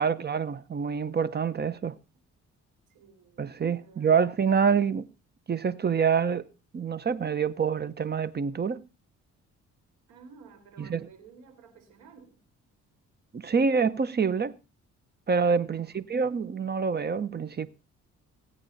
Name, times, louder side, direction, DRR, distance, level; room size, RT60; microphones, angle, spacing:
voice 1, 0.0-1.9 3.4-5.1 5.5-6.4 6.7-8.8 10.8-11.1 13.3-14.5 15.3-17.7, right 6 dB, 35° right, 0.8 m, -26 dB
voice 2, 2.9-4.3 10.1-12.3 15.7-16.0, right 5 dB, 90° right, 4.3 m, -54 dB
20.0 x 8.7 x 4.0 m
cardioid pair, 90°, 30 cm